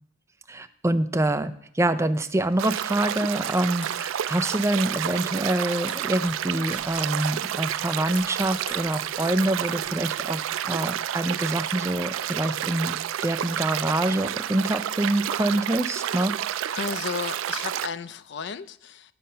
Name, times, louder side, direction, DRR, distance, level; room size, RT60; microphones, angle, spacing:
voice 1, 0.5-13.0 13.2-16.8, right 1 dB, 15° right, 10 dB, 0.4 m, -26 dB
sound 1, 2.1-9.9, left 2 dB, 30° left, 2.2 m, -48 dB
sound 2, 2.6-17.9, right 10 dB, 80° right, 0.3 m, -30 dB
voice 2, 16.7-19.1, left 6 dB, 60° left, 14 dB, 0.4 m, -33 dB
9.4 x 6.5 x 5.6 m, 0.66 s
head